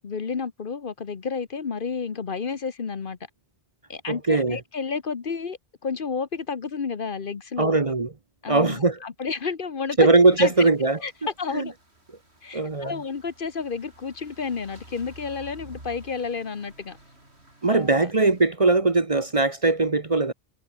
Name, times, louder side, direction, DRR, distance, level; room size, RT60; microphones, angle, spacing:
voice 1, 0.0-3.2 3.9-7.8 8.4-10.1 10.4-10.7 11.0-11.1 11.4-11.7 12.4-17.0 17.7-18.1, left 5 dB, 50° left, 1.2 m, -31 dB
voice 2, 4.1-4.6 7.6-8.1 8.5-9.0 10.0-11.0 11.5-11.7 12.5-12.9 17.6-20.3, right 3 dB, 30° right, 1.0 m, -20 dB
sound 1, 10.1-18.5, right 1 dB, 70° right, 7.0 m, -51 dB
omnidirectional pair, 1.1 m